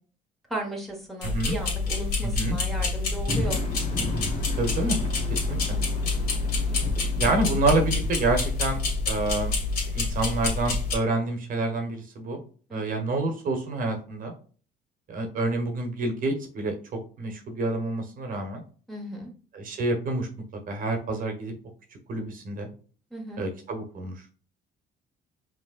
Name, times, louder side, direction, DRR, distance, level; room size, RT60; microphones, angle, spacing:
voice 1, 0.5-3.6 5.5-5.8 6.7-7.0 12.7-12.8 18.9-19.3 23.1-23.4, right 1 dB, ahead, -2 dB, 1.5 m, -36 dB
sound 1, 1.2-10.9, left 3 dB, 60° left, 2.2 m, -27 dB
voice 2, 1.2-1.6 2.2-2.6 4.6-5.0 5.3-5.8 7.2-8.8 9.1-9.5 9.9-12.4 12.7-14.3 15.1-18.6 19.5-20.3 20.7-21.5 22.1-22.7 23.4-24.1, right 2 dB, 55° right, 4 dB, 1.2 m, -28 dB
sound 2, 3.3-9.0, left 1 dB, 45° left, 1.4 m, -35 dB
5.4 x 3.3 x 2.5 m, 0.39 s
cardioid pair, 110°, 17 cm